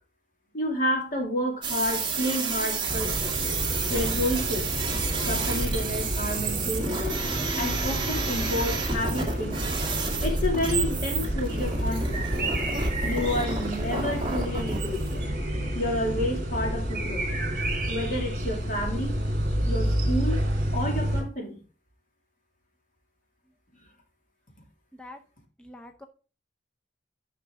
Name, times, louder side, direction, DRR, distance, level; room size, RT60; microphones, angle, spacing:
voice 1, 0.5-3.4 3.9-4.7 5.2-7.2 7.5-9.8 10.2-12.3 13.0-15.3 15.7-17.3 17.9-19.2 19.7-20.4 20.7-21.6, left 1 dB, 50° left, 2 dB, 2.4 m, -30 dB
sound 1, 1.6-15.2, right 4 dB, 25° right, 1.8 m, -30 dB
sound 2, 2.9-21.2, right 1 dB, 50° right, 3.3 m, -30 dB
voice 2, 25.6-26.1, left 2 dB, 5° left, 4 dB, 0.6 m, -44 dB
10.0 x 5.8 x 3.6 m, 0.35 s
head